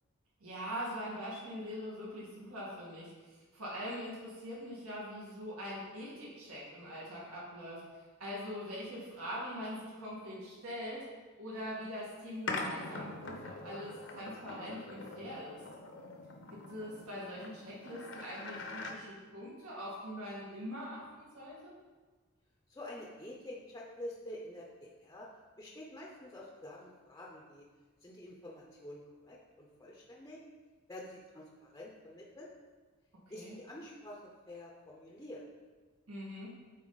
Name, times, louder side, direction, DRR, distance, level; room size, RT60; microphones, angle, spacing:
voice 1, 0.4-7.8 8.2-11.1 11.4-15.6 16.7-21.7 33.3-33.6 36.1-36.5, equal, 80° right, -6 dB, 2.2 m, -43 dB
sound 1, 12.5-19.0, left 3 dB, 55° left, 0.7 m, -43 dB
voice 2, 22.7-25.3 25.6-27.7 28.0-30.4 30.9-32.5 33.3-34.2 34.5-35.4, left 1 dB, 15° left, -2 dB, 0.6 m, -48 dB
8.9 x 4.0 x 3.9 m, 1.4 s
head